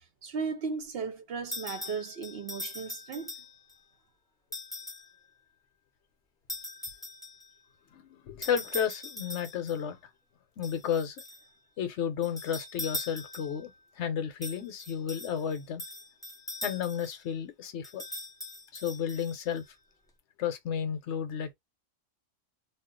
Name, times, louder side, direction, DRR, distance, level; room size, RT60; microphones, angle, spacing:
voice 1, 0.2-3.3, right 5 dB, 65° right, 0.7 m, -36 dB
sound 1, 1.5-3.8 4.5-5.1 6.5-7.5 8.4-9.8 10.6-11.5 12.2-13.7 14.4-17.2 17.8-19.6, left 1 dB, 5° left, 0.5 m, -41 dB
voice 2, 7.9-10.0 10.6-11.2 11.8-13.7 14.0-15.8 16.6-18.0 18.7-19.6 20.4-21.5, left 8 dB, 65° left, 0.9 m, -32 dB
2.4 x 2.2 x 3.7 m
omnidirectional pair, 1.3 m